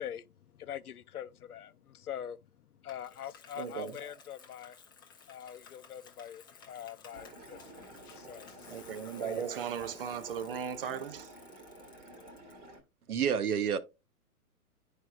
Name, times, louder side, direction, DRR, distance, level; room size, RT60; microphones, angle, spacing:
voice 1, 0.0-4.8 5.3-9.5, left 10 dB, 70° left, 0.7 m, -44 dB
Bicycle, 2.9-12.5, left 6 dB, 15° left, 0.4 m, -57 dB
voice 2, 3.6-4.0 8.7-11.3, right 7 dB, 40° right, 0.5 m, -37 dB
sound 1, 7.1-12.8, right 1 dB, 20° right, 1.0 m, -51 dB
voice 3, 13.1-13.8, right 7 dB, 70° right, 0.9 m, -28 dB
10.0 x 4.9 x 2.3 m
figure-of-eight pair, 125°, 46 cm